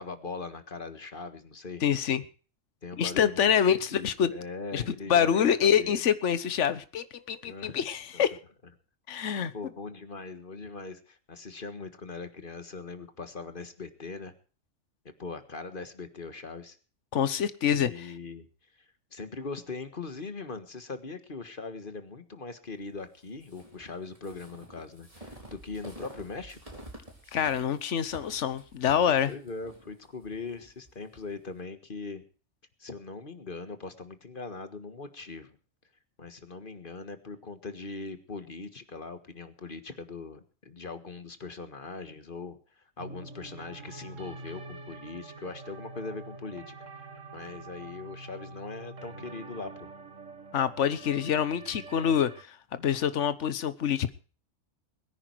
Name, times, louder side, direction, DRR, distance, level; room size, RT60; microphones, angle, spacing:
voice 1, 0.0-1.8 2.8-6.0 7.4-7.8 8.1-8.3 9.2-14.3 15.1-16.8 17.7-18.5 18.8-26.7 29.2-32.2 32.8-35.6 36.2-49.9, left 4 dB, 45° left, 1.8 m, -41 dB
voice 2, 1.8-2.2 3.0-4.3 4.7-4.8 5.1-8.4 9.1-9.5 17.1-18.1 27.3-29.3 50.5-54.1, left 8 dB, 70° left, 1.3 m, -26 dB
sound 1, 23.4-31.3, right 1 dB, 25° right, 4.5 m, -49 dB
sound 2, 43.0-52.4, right 3 dB, 80° right, 1.9 m, -45 dB
22.0 x 10.0 x 4.7 m
omnidirectional pair, 1.3 m